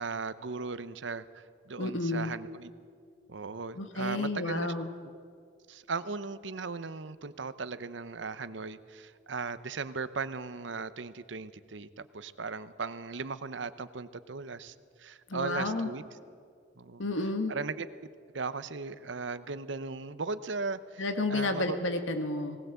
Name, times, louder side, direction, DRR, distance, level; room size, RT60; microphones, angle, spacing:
voice 1, 0.0-2.7 3.3-4.7 5.7-16.0 16.8-17.0 17.5-17.9 18.3-21.8, right 4 dB, 70° right, 14 dB, 0.8 m, -37 dB
voice 2, 1.8-2.3 3.8-4.9 15.3-15.9 17.0-17.5 21.0-22.6, left 2 dB, 85° left, 7 dB, 1.5 m, -31 dB
19.5 x 19.0 x 8.1 m, 2.1 s
head